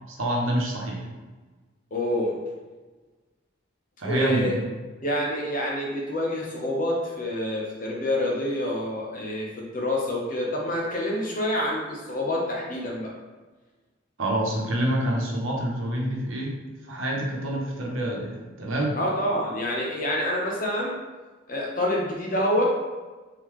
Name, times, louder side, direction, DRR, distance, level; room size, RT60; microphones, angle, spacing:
voice 1, 0.1-1.1 4.0-4.5 14.2-16.6 16.9-19.0, right 1 dB, 90° right, -1 dB, 0.9 m, -27 dB
voice 2, 1.9-2.4 4.0-4.6 5.0-13.1 18.9-21.0 21.5-22.6, left 1 dB, 45° left, -3 dB, 1.0 m, -27 dB
3.8 x 3.8 x 3.1 m, 1.3 s
head